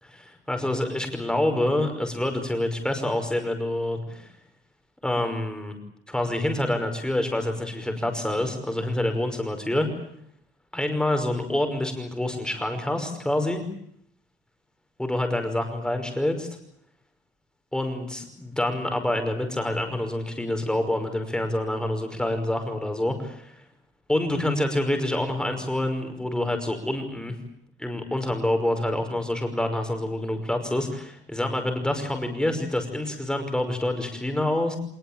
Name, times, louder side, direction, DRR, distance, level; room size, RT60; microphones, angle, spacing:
voice 1, 0.0-4.3 5.0-5.7 6.1-9.9 10.7-13.6 15.0-16.5 17.7-23.6 24.1-27.3 27.8-34.8, left 1 dB, 5° left, 5 dB, 5.5 m, -27 dB
26.5 x 20.5 x 8.9 m, 0.69 s
cardioid pair, 155°, 19 cm